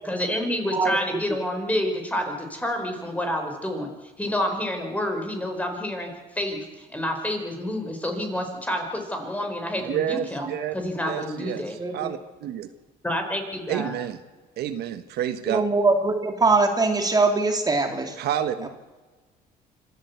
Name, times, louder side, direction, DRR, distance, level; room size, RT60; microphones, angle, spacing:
voice 1, 0.0-3.9 4.2-6.1 6.3-10.4 10.7-11.7 13.0-13.9, left 1 dB, 10° left, 4 dB, 4.6 m, -28 dB
voice 2, 9.9-10.7 11.0-11.6 11.9-12.7 13.7-14.2 14.6-15.6 18.2-18.7, right 10 dB, 75° right, 10 dB, 1.4 m, -29 dB
voice 3, 11.8-12.1 15.5-18.2, right 3 dB, 20° right, 5 dB, 2.5 m, -22 dB
25.5 x 14.0 x 8.3 m, 1.3 s
cardioid pair, 110°, 17 cm